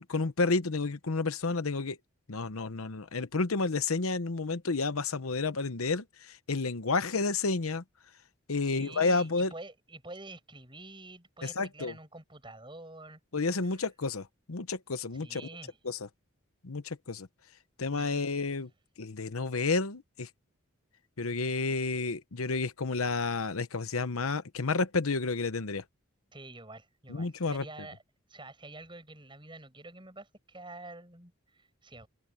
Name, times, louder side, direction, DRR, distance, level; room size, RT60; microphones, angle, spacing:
voice 1, 0.0-2.0 2.3-7.8 8.5-9.5 11.4-11.9 13.3-15.4 15.8-16.0 16.6-17.3 17.8-18.7 19.0-20.3 21.2-25.8 27.1-27.6, left 3 dB, 90° left, 1.0 m, -30 dB
voice 2, 8.6-13.2 13.6-13.8 15.1-15.8 17.9-18.4 26.3-28.0 28.3-32.1, right 2 dB, 25° right, 7.8 m, -48 dB
head